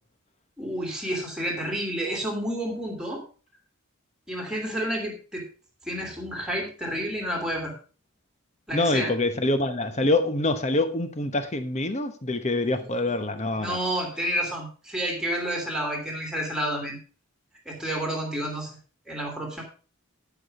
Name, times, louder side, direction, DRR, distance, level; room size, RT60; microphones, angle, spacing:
voice 1, 0.6-3.2 4.3-5.5 5.8-7.7 8.7-9.1 12.8-13.1 13.5-17.0 17.6-18.7 19.1-19.6, equal, 5° right, 2.9 m, -30 dB
voice 2, 8.7-13.8, left 2 dB, 30° left, 1.0 m, -25 dB
11.0 x 6.1 x 5.2 m
head